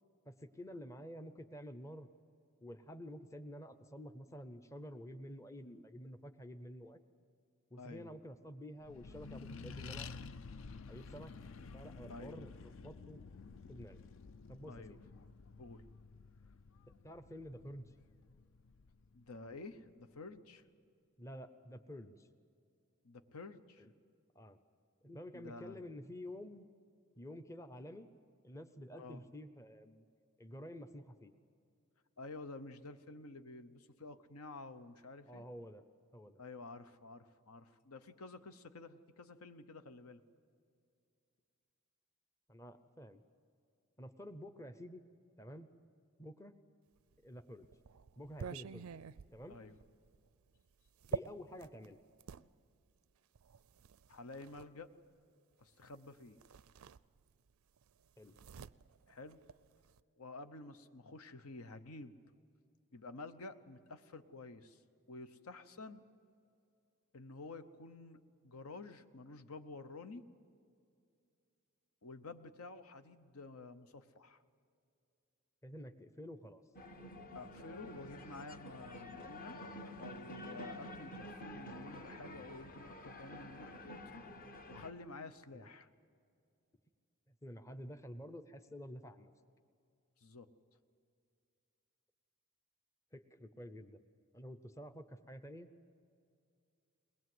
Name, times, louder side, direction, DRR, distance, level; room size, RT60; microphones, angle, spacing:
voice 1, 0.3-2.1 2.6-7.0 7.7-10.1 10.9-11.3 11.7-13.2 13.7-14.0 14.5-15.0 17.0-17.9 21.2-22.3 23.8-23.9 24.3-24.6 25.0-26.7 27.2-28.1 28.4-30.0 30.4-31.3 35.3-35.8 36.1-36.4 42.5-43.2 44.0-45.0 45.4-45.7 46.2-46.5 47.2-47.7 48.2-48.9 49.3-49.6 51.1-52.0 58.2-58.4 75.6-76.6 85.5-85.7 87.4-89.3 93.1-94.0 94.3-95.7, equal, 15° left, 10 dB, 0.6 m, -50 dB
voice 2, 7.8-8.1 12.1-12.4 14.6-15.3 15.6-15.9 19.1-20.6 23.0-23.9 25.3-25.8 28.9-29.2 32.2-35.4 36.4-40.2 49.5-49.8 54.1-54.9 55.6-56.4 59.1-59.4 60.2-62.2 62.9-64.8 65.1-66.0 67.1-70.2 72.0-74.4 77.3-79.6 80.0-84.2 84.7-85.9 90.2-90.5, left 3 dB, 80° left, 10 dB, 0.9 m, -51 dB
Accelerating revving vroom, 8.8-19.7, left 4 dB, 60° left, 0.5 m, -52 dB
sound 1, 47.1-52.5 53.4-54.7 55.9-56.1 56.4-57.5 57.8-60.0, right 6 dB, 75° right, 0.4 m, -47 dB
sound 2, 76.7-84.9, left 1 dB, 40° left, 1.0 m, -49 dB
21.5 x 20.0 x 7.8 m, 2.4 s
head